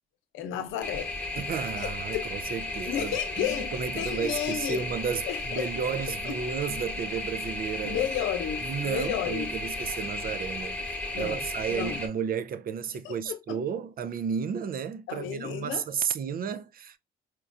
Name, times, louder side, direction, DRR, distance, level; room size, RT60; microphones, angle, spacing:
voice 1, 0.3-1.1 1.8-2.3 2.9-4.9 5.3-5.7 6.2-6.3 7.8-9.5 11.1-11.4 11.7-12.0 13.0-13.6 15.1-15.8, left 10 dB, 90° left, 0.7 m, -32 dB
sound 1, 0.8-12.1, left 2 dB, 10° left, 1.1 m, -34 dB
voice 2, 1.3-8.1 8.6-10.8 11.2-17.0, right 7 dB, 45° right, 0.5 m, -33 dB
4.3 x 2.2 x 2.5 m
cardioid pair, 90°, 20 cm